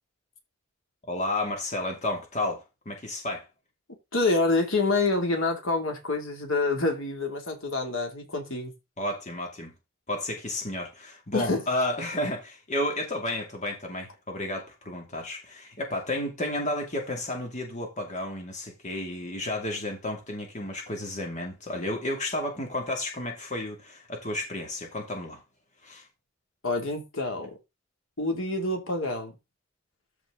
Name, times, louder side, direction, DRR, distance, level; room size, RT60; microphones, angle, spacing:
voice 1, 1.0-3.5 9.0-9.7 10.1-25.4 25.8-26.0, left 1 dB, 35° left, 2.4 m, -32 dB
voice 2, 4.1-8.7 11.3-11.6 26.6-27.6 28.2-29.3, left 2 dB, 85° left, 2.7 m, -27 dB
13.5 x 4.9 x 3.8 m
head